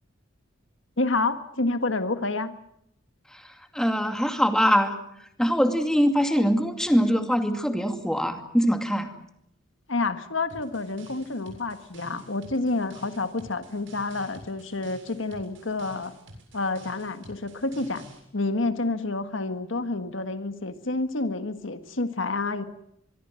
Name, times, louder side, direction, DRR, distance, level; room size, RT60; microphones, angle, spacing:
voice 1, 1.0-2.5 9.9-16.1 16.5-18.1 18.3-22.6, left 3 dB, 75° left, 10 dB, 1.7 m, -29 dB
voice 2, 3.7-5.0 5.4-9.1, equal, 5° left, 6 dB, 2.4 m, -23 dB
sound 1, 10.5-18.2, right 1 dB, 70° right, 7.7 m, -49 dB
25.0 x 22.5 x 7.7 m, 0.77 s
head